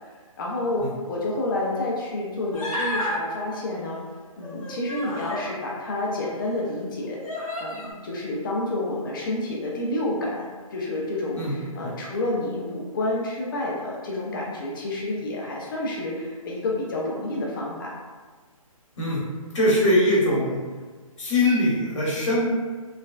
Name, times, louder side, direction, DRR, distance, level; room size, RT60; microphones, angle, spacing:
voice 1, 0.4-4.0 4.4-7.3 7.6-18.0, left 2 dB, 35° left, -3 dB, 0.6 m, -29 dB
Human voice, 2.5-3.2 4.4-5.5 6.3-6.4 7.2-7.9, left 1 dB, 70° left, 0.9 m, -31 dB
voice 2, 19.5-20.6 21.2-22.5, left 1 dB, 55° left, -6 dB, 1.2 m, -22 dB
3.2 x 2.2 x 2.4 m, 1.5 s
hypercardioid pair, 150°, 18 cm